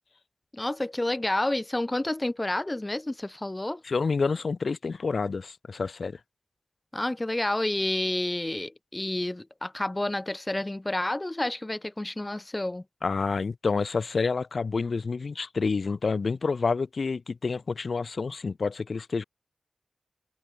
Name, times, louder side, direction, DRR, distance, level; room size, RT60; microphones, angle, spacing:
voice 1, 0.5-3.8 6.9-12.8, left 1 dB, 20° left, 0.8 m, -29 dB
voice 2, 3.8-6.2 13.0-19.2, left 4 dB, 65° left, 0.5 m, -28 dB
wide cardioid pair, 95°, 0 cm